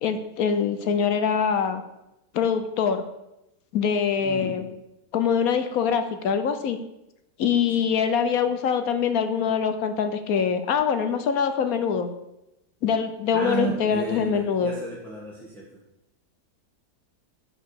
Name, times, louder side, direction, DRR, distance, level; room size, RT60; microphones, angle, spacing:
voice 1, 0.0-1.8 2.3-3.0 3.7-4.7 5.1-6.8 7.4-12.1 12.8-14.7, left 7 dB, 65° left, 9 dB, 1.1 m, -24 dB
voice 2, 4.2-4.6 13.3-15.7, right 4 dB, ahead, -5 dB, 1.2 m, -33 dB
6.9 x 5.3 x 6.6 m, 0.90 s
omnidirectional pair, 1.8 m